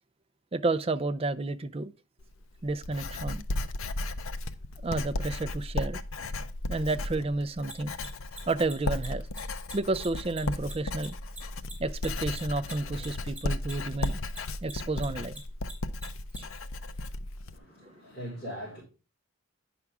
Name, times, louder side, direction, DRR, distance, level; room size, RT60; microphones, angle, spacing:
voice 1, 0.5-1.9 2.6-3.4 4.8-6.0 6.7-7.9 8.5-9.3 9.7-11.2 11.8-14.2 14.6-15.3 16.4-16.5, right 2 dB, 25° right, 0.4 m, -31 dB
Writing, 2.2-17.6, left 2 dB, 65° left, 0.6 m, -35 dB
Mechanisms, 7.6-14.4 14.6-16.4, right 3 dB, 5° right, 3.2 m, -44 dB
voice 2, 17.5-18.8, equal, 25° left, 4.7 m, -41 dB
9.5 x 6.0 x 3.5 m
head